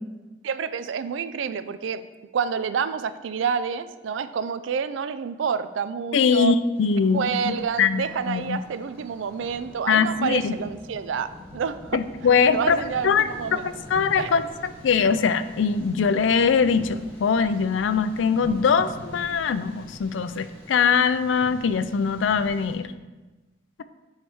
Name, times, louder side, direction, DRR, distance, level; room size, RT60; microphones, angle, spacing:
voice 1, 0.4-2.0 2.3-6.7 7.1-12.0 12.5-13.7 14.2-14.3, right 6 dB, 80° right, 13 dB, 0.4 m, -28 dB
voice 2, 6.1-8.6 9.9-10.6 11.9-13.2 13.5-22.9, left 6 dB, 80° left, 12 dB, 0.4 m, -22 dB
Thunder, 6.7-22.7, equal, 10° left, 1.6 m, -44 dB
8.9 x 3.3 x 4.6 m, 1.2 s
head